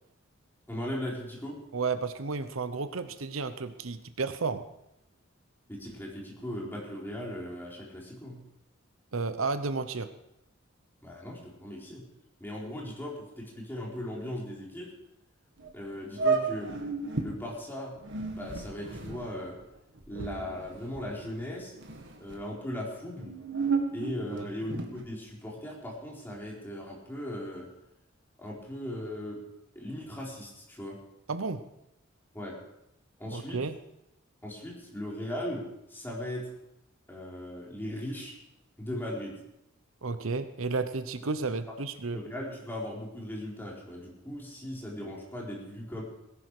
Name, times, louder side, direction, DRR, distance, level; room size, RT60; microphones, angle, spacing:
voice 1, 0.7-1.6 5.7-8.4 11.0-12.0 12.4-14.9 15.7-16.7 17.2-18.0 18.3-19.6 20.1-21.7 22.2-23.3 23.9-27.7 28.4-29.4 29.7-31.0 32.3-32.6 33.2-33.6 34.4-35.6 35.9-36.5 37.1-38.4 38.8-39.4 41.7-41.8 42.1-46.0, left 1 dB, 10° left, -4 dB, 4.3 m, -38 dB
voice 2, 1.7-4.6 9.1-10.1 31.3-31.6 33.3-33.8 40.0-42.2, right 4 dB, 85° right, 11 dB, 0.9 m, -32 dB
sound 1, 15.6-15.7 16.2-17.3 18.0-21.4 21.7-22.4 23.0-25.0, right 4 dB, 65° right, 2.0 m, -32 dB
18.0 x 11.0 x 4.9 m, 0.83 s
head